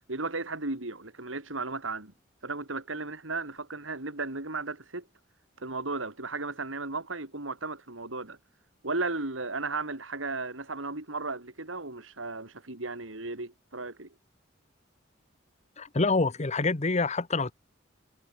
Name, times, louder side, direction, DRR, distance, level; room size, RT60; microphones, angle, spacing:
voice 1, 0.1-2.1 2.4-5.1 5.6-8.4 8.8-14.1, right 3 dB, 90° right, 3.5 m, -35 dB
voice 2, 15.8-17.5, left 3 dB, 35° left, 1.1 m, -26 dB
head